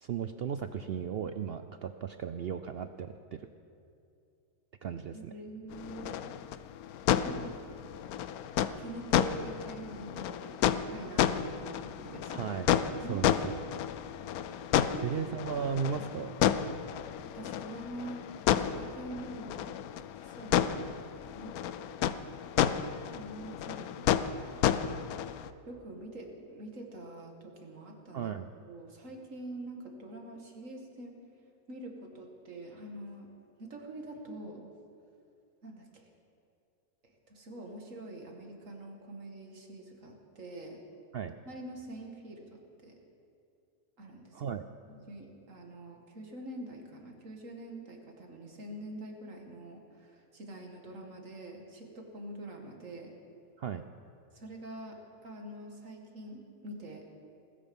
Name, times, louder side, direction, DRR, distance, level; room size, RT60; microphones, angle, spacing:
voice 1, 0.0-3.5 4.8-5.3 12.3-13.5 15.0-16.4 28.1-28.5 41.1-41.3 44.3-44.6 53.6-53.8, right 7 dB, 75° right, 9 dB, 0.5 m, -36 dB
voice 2, 5.1-6.2 7.0-7.6 8.4-12.5 13.0-13.3 14.9-15.2 16.0-16.1 17.3-19.7 20.2-20.7 21.2-21.6 23.1-24.3 25.7-28.3 28.6-31.2 31.7-33.3 33.6-34.7 35.6-36.1 37.3-40.8 41.5-43.0 44.0-44.4 44.9-53.1 54.3-57.0, right 1 dB, 55° right, 2 dB, 2.3 m, -45 dB
sound 1, 5.7-25.5, left 10 dB, 75° left, 1.1 m, -31 dB
19.5 x 14.0 x 5.4 m, 2.6 s
omnidirectional pair, 1.6 m